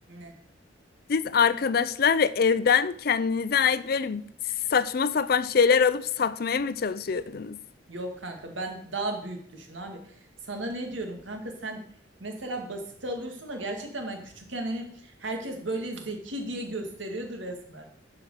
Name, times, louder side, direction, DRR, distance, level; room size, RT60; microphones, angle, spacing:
voice 1, 1.1-4.3 4.7-7.6, left 6 dB, 50° left, 0.4 m, -24 dB
voice 2, 7.9-10.0 10.4-11.8 12.2-17.9, right 2 dB, 80° right, 2.2 m, -35 dB
11.5 x 5.0 x 6.5 m
head